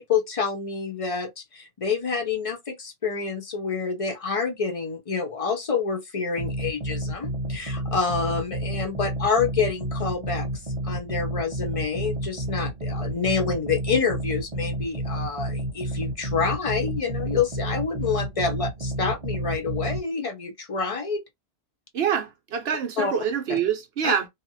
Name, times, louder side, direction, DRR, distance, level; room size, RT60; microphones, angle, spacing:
voice 1, 0.0-10.5 10.8-21.2 23.0-23.1 23.5-23.6 24.0-24.1, left 5 dB, 40° left, 0.5 m, -27 dB
sound 1, 6.4-20.0, right 1 dB, 35° right, 0.5 m, -30 dB
voice 2, 21.9-24.3, right 8 dB, 60° right, 0.9 m, -26 dB
2.8 x 2.5 x 2.6 m
omnidirectional pair, 1.2 m